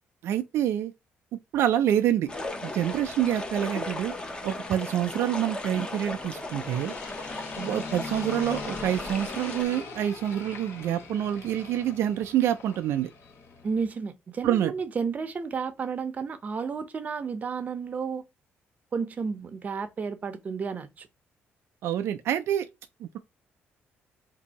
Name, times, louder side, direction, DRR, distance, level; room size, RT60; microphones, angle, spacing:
voice 1, 0.2-0.9 1.5-2.3 2.6-4.1 4.4-6.9 7.6-13.1 14.4-14.7 21.8-22.7 23.0-23.2, right 11 dB, 75° right, 0.3 m, -27 dB
sound 1, 2.3-13.8, left 4 dB, 70° left, 1.2 m, -42 dB
sound 2, 2.3-9.6, left 2 dB, 20° left, 0.8 m, -36 dB
voice 2, 13.6-18.2 18.9-21.1, right 5 dB, 35° right, 0.6 m, -32 dB
2.7 x 2.6 x 4.0 m
cardioid pair, 100°, 4 cm